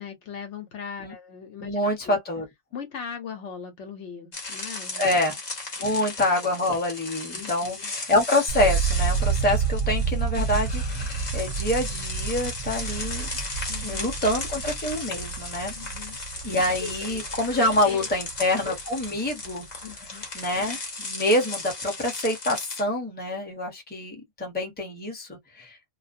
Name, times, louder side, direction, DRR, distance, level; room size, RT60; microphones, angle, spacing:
voice 1, 0.0-1.8 2.0-2.2 2.7-5.1 5.8-6.0 7.3-7.9 13.7-14.2 15.7-16.2 16.4-17.2 17.5-18.1 19.8-20.3, left 7 dB, 65° left, 1.0 m, -39 dB
voice 2, 1.6-2.5 5.0-5.4 5.8-13.3 13.8-15.7 16.4-19.7 20.3-25.8, left 1 dB, 10° left, 0.7 m, -26 dB
sound 1, 4.3-22.8, left 3 dB, 35° left, 0.9 m, -36 dB
sound 2, 8.5-18.5 18.8-19.5, right 6 dB, 65° right, 0.6 m, -29 dB
2.4 x 2.1 x 2.5 m
omnidirectional pair, 1.4 m